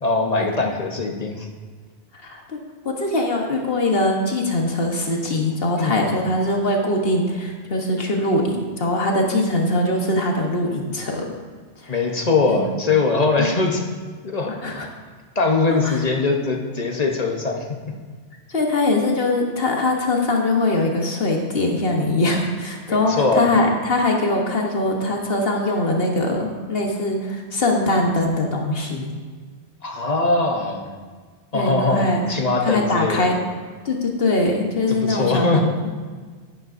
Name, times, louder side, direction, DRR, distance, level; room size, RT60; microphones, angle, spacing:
voice 1, 0.0-1.5 5.8-6.1 11.9-13.8 14.2-14.5 15.3-17.8 22.9-23.5 29.8-30.9 31.5-33.3 34.9-35.7, left 3 dB, 40° left, 2 dB, 0.9 m, -21 dB
voice 2, 2.2-2.6 2.8-11.3 11.8-11.9 12.5-12.6 14.6-14.9 15.8-16.0 18.5-29.2 31.5-32.2 32.6-33.4 33.8-35.9, left 2 dB, 55° left, 1 dB, 1.3 m, -22 dB
11.0 x 10.5 x 2.6 m, 1.5 s
omnidirectional pair, 1.2 m